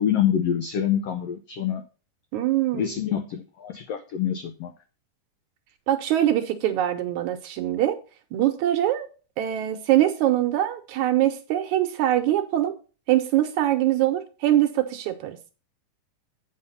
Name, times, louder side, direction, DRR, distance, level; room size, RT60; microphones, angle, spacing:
voice 1, 0.0-1.8 2.7-4.7, left 9 dB, 85° left, 1.4 m, -26 dB
voice 2, 2.3-3.0 5.9-8.0 8.3-9.1 9.4-12.7 13.1-15.4, right 13 dB, 70° right, 2.0 m, -23 dB
8.4 x 5.8 x 5.5 m
omnidirectional pair, 3.8 m